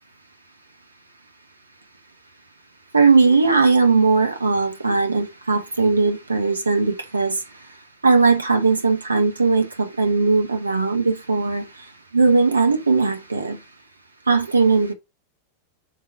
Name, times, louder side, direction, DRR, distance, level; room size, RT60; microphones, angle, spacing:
voice 1, 2.9-7.4 8.0-11.6 12.1-13.6 14.3-14.9, right 4 dB, 80° right, 1.0 m, -18 dB
5.9 x 3.8 x 4.1 m
figure-of-eight pair, 90°, 0 cm